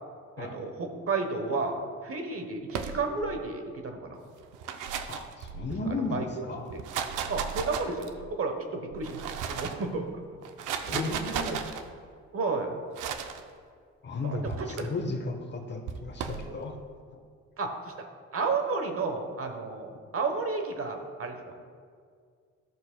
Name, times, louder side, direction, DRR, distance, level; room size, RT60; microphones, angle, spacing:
voice 1, 0.4-4.2 6.1-6.4 7.3-10.1 10.7-11.0 11.3-11.6 12.3-12.8 14.2-14.9 17.6-17.7 18.3-21.4, right 3 dB, 50° right, 5 dB, 1.0 m, -32 dB
sound 1, 2.7-3.4 4.4-5.9 6.6-8.3 8.9-9.8 10.4-11.8 12.9-13.4 14.5-14.8 15.9-16.5, right 7 dB, 85° right, 0.6 m, -35 dB
voice 2, 5.1-6.8 10.9-11.6 14.0-16.8, left 3 dB, 35° left, 4 dB, 1.0 m, -34 dB
13.0 x 6.6 x 2.2 m, 2.1 s
cardioid pair, 90°, 30 cm